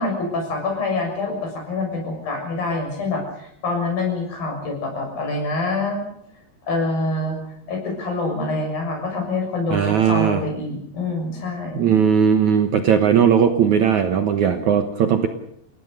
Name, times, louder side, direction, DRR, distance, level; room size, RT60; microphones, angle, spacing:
voice 1, 0.0-6.1 6.6-7.4 7.7-11.9, left 2 dB, 60° left, 2 dB, 8.4 m, -26 dB
voice 2, 9.7-10.4 11.8-15.3, right 7 dB, 65° right, 7 dB, 2.1 m, -18 dB
30.0 x 17.0 x 6.8 m, 0.71 s
omnidirectional pair, 4.7 m